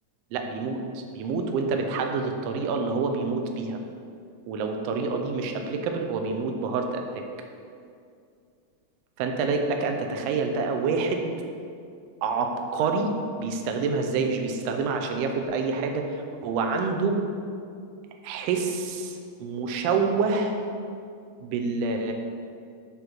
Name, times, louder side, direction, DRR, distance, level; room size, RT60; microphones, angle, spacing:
voice 1, 0.3-3.8 4.5-7.2 9.2-11.3 12.2-13.1 13.4-17.2 18.2-20.6 21.4-22.1, right 4 dB, 80° right, 4 dB, 1.5 m, -27 dB
7.9 x 3.6 x 6.0 m, 2.3 s
omnidirectional pair, 3.6 m